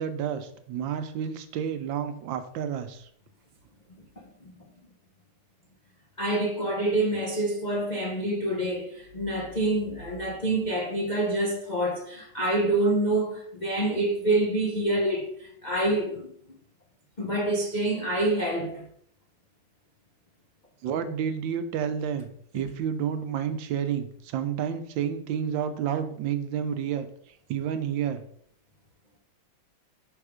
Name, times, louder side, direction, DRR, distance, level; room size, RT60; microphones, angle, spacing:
voice 1, 0.0-3.1 20.8-27.1 27.5-28.2, right 8 dB, 80° right, 1.3 m, -30 dB
voice 2, 6.2-16.3 17.2-18.9 22.5-22.6, right 1 dB, 55° left, 0.4 m, -27 dB
5.4 x 3.5 x 4.9 m
omnidirectional pair, 2.1 m